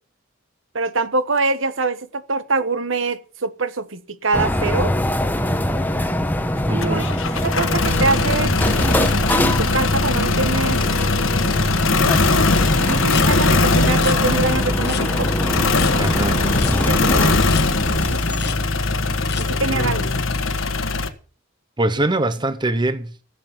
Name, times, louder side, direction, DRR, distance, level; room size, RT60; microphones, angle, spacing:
voice 1, 0.7-4.9 6.7-7.1 7.4-8.6 9.4-10.8 12.8-15.3 16.8-17.5 17.8-18.2 19.4-20.0, right 3 dB, 70° right, 1.2 m, -24 dB
sound 1, 4.3-18.9, equal, 10° left, 1.1 m, -24 dB
voice 2, 6.7-7.1 15.9-16.4 21.8-23.1, right 2 dB, 20° right, 0.9 m, -22 dB
sound 2, 6.8-21.1, left 3 dB, 70° left, 1.5 m, -20 dB
sound 3, 13.1-13.3 13.9-14.2 14.9-15.0 15.7-15.9 16.6-16.8 17.5-17.7 18.3-18.6 19.3-19.5, left 11 dB, 55° left, 1.1 m, -31 dB
15.5 x 7.7 x 7.3 m
head